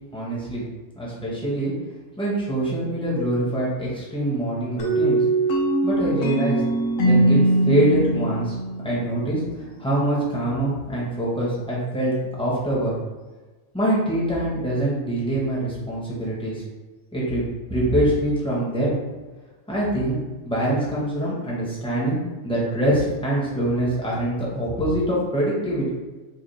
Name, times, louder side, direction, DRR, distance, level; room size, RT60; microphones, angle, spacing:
voice 1, 0.1-0.6 0.9-1.7 2.2-5.2 5.8-6.6 7.0-8.5 8.8-9.4 9.8-12.1 12.4-13.0 13.7-16.6 17.1-17.4 17.7-19.0 19.7-20.2 20.4-22.2 22.4-25.9, right 1 dB, 5° left, -7 dB, 1.0 m, -24 dB
sound 1, 4.8-9.5, right 1 dB, 80° left, 1.1 m, -21 dB
4.9 x 2.2 x 3.2 m, 1.3 s
omnidirectional pair, 1.3 m